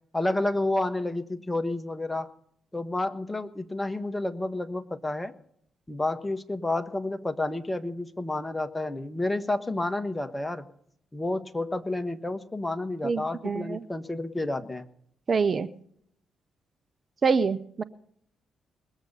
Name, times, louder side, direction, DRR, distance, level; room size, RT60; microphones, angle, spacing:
voice 1, 0.1-2.3 2.7-5.3 5.9-10.7 11.1-14.9, left 2 dB, 15° left, 9 dB, 1.5 m, -30 dB
voice 2, 13.0-13.8 15.3-15.7 17.2-17.8, right 5 dB, 45° right, 13 dB, 0.7 m, -25 dB
21.0 x 8.0 x 5.6 m, 0.67 s
hypercardioid pair, 40°, 0 cm